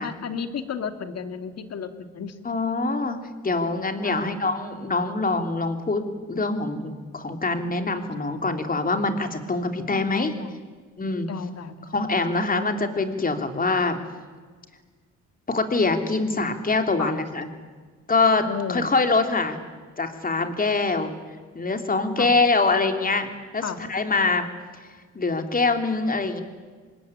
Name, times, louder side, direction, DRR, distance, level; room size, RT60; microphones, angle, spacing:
voice 1, 0.0-2.4 4.0-4.4 9.9-10.6 11.3-12.0 17.0-17.2 18.4-18.9 22.2-22.4 23.6-23.8, left 6 dB, 55° left, 8 dB, 2.5 m, -33 dB
voice 2, 2.5-3.2 3.4-6.0 6.3-10.3 11.0-11.3 11.9-14.0 15.5-17.5 18.1-19.6 20.0-21.1 21.6-23.6 23.9-24.5 25.2-26.4, left 3 dB, 30° left, 6 dB, 3.4 m, -24 dB
26.5 x 20.5 x 10.0 m, 1.5 s
cardioid pair, 90°, 30 cm